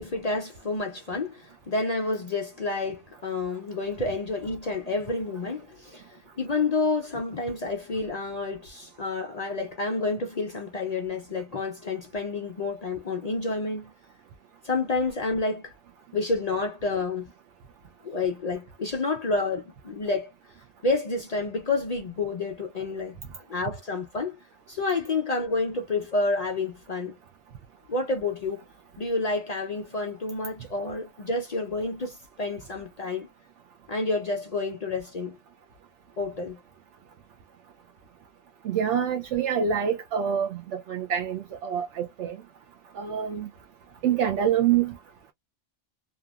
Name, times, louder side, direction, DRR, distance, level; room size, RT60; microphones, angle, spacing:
voice 1, 0.0-13.9 14.6-15.7 16.1-17.3 18.0-20.3 20.8-23.2 23.5-27.2 27.9-28.6 29.0-33.3 33.9-35.4 36.2-36.6, left 3 dB, 55° left, 0.4 m, -29 dB
voice 2, 38.6-42.4 43.0-43.5 44.0-44.9, right 8 dB, 75° right, 0.9 m, -26 dB
2.7 x 2.5 x 2.3 m
omnidirectional pair, 1.2 m